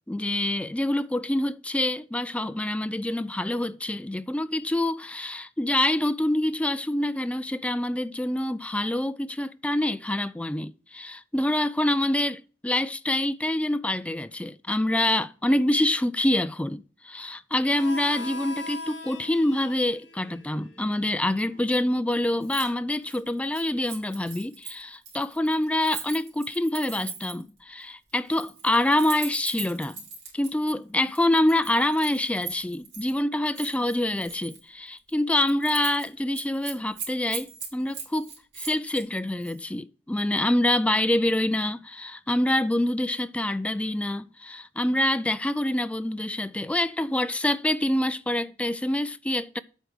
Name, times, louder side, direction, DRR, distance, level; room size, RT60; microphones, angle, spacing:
voice 1, 0.1-30.0 30.3-38.3 38.6-49.6, left 1 dB, 5° left, 0.3 m, -26 dB
Harmonica, 17.7-22.9, left 2 dB, 75° left, 2.3 m, -42 dB
Keys jangling, 22.4-22.7 23.0-27.5 28.2-30.5 31.1-33.1 33.5-34.6 35.0-35.1 35.4-36.1 36.3-39.0 39.4-39.6, right 5 dB, 90° right, 3.2 m, -39 dB
8.2 x 4.8 x 6.1 m
head